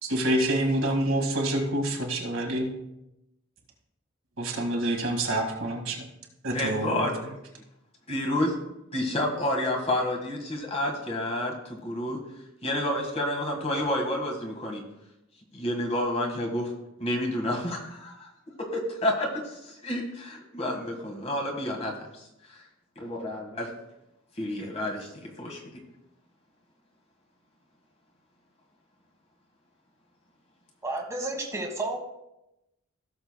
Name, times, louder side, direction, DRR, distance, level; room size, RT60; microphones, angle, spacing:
voice 1, 0.0-2.7 4.4-6.1 6.4-7.1, right 1 dB, 70° right, 1 dB, 2.0 m, -27 dB
voice 2, 6.5-7.2 8.1-8.5 8.9-12.2 12.6-14.8 15.5-16.7 17.0-18.3 18.7-21.9 22.5-22.6 22.9-23.7 24.4-25.7, left 1 dB, 30° left, 0 dB, 1.6 m, -29 dB
voice 3, 30.8-32.0, right 2 dB, 15° right, 0 dB, 1.4 m, -31 dB
17.0 x 6.8 x 2.2 m, 0.89 s
head